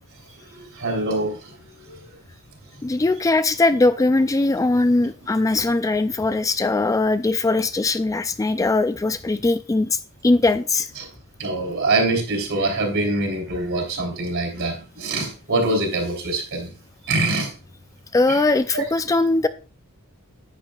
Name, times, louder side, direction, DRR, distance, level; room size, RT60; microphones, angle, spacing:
voice 1, 0.5-1.5 1.8-2.0 11.0-11.1 11.4-16.7 17.0-17.5 18.3-18.4 18.7-18.8, right 2 dB, 60° right, 2 dB, 3.4 m, -24 dB
voice 2, 2.8-10.0 10.2-10.9 18.1-19.5, left 2 dB, 15° left, 11 dB, 0.3 m, -20 dB
10.5 x 8.9 x 2.4 m, 0.35 s
head